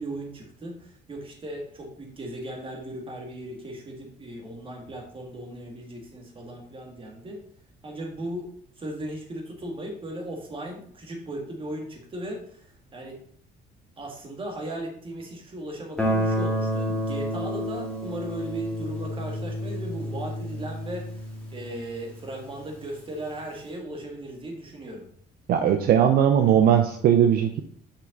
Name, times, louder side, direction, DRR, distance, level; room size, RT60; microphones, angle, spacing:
voice 1, 0.0-7.4 7.8-8.5 8.8-13.2 14.0-21.3 21.5-25.1, right 1 dB, 30° right, 1 dB, 2.0 m, -37 dB
Guitar, 16.0-22.7, equal, 5° left, 2.3 m, -30 dB
voice 2, 25.5-27.6, right 9 dB, 60° right, 6 dB, 0.7 m, -19 dB
6.1 x 5.7 x 3.9 m, 0.62 s
cardioid pair, 110°, 17 cm